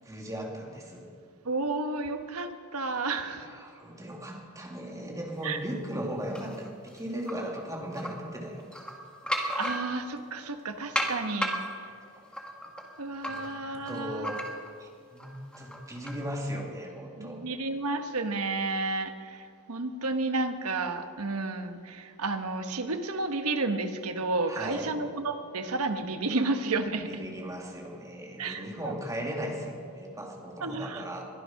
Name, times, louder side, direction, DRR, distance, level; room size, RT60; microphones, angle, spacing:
voice 1, 0.0-1.1 3.5-8.9 13.3-13.5 13.9-14.5 14.8-17.4 24.5-24.9 27.1-31.2, equal, 15° right, 0 dB, 2.5 m, -37 dB
voice 2, 1.4-3.5 5.4-5.6 9.6-11.9 13.0-14.3 17.2-27.2 28.4-28.9 30.6-31.0, right 3 dB, 80° right, 8 dB, 1.2 m, -32 dB
sound 1, 6.4-7.3 7.9-8.1 8.6-10.2 11.0-14.8 15.2-16.3, equal, 5° left, 1.7 m, -34 dB
21.5 x 11.5 x 5.8 m, 2.3 s
head